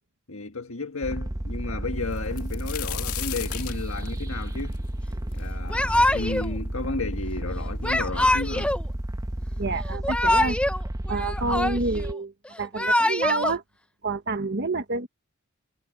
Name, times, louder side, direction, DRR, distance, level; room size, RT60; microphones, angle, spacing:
voice 1, 0.3-4.8 5.3-8.7, left 3 dB, 65° left, 1.7 m, -33 dB
sound 1, 1.0-12.1, right 1 dB, 15° right, 0.9 m, -32 dB
sound 2, 2.1-5.9 6.4-6.5 7.3-7.4 7.7-8.3 9.2-9.3 9.7-9.9, left 13 dB, 90° left, 2.1 m, -36 dB
Yell / Crying sobbing, 5.7-6.5 7.8-8.8 9.9-10.8 11.1-12.1 12.6-13.5, left 1 dB, 5° left, 0.7 m, -24 dB
voice 2, 9.6-10.6 11.1-12.3 12.6-13.6 14.0-15.1, right 3 dB, 50° right, 1.4 m, -28 dB
head